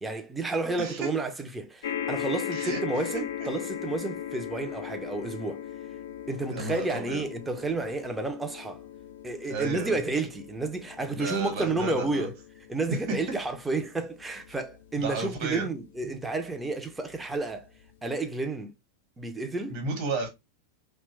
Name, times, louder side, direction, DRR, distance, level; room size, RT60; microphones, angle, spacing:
voice 1, 0.0-5.6 6.3-8.8 9.2-12.3 12.7-17.7 18.0-18.7 19.2-19.8, right 3 dB, 10° right, 0.5 m, -31 dB
voice 2, 0.8-1.1 2.5-2.8 3.4-3.5 6.5-7.2 9.5-10.0 11.1-12.3 12.9-13.0 13.3-13.4 15.0-15.7 19.7-20.3, right 3 dB, 45° right, 1.2 m, -33 dB
sound 1, 1.8-16.4 17.1-17.2 17.5-17.6, left 9 dB, 60° left, 0.3 m, -39 dB
2.9 x 2.2 x 3.0 m
figure-of-eight pair, 90°, 0 cm